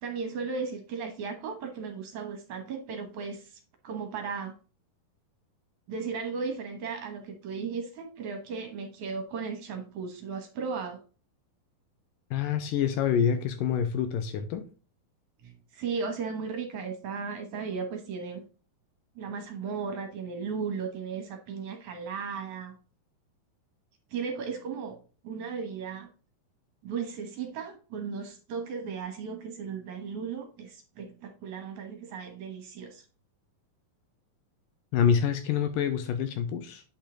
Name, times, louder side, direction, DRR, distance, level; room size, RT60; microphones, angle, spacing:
voice 1, 0.0-4.5 5.9-11.0 15.4-18.4 19.2-22.8 24.1-25.0 25.2-26.1 26.8-33.0, right 5 dB, 65° right, 2.3 m, -36 dB
voice 2, 12.3-14.6 34.9-36.8, left 8 dB, 80° left, 2.2 m, -26 dB
8.9 x 5.5 x 3.8 m
omnidirectional pair, 4.3 m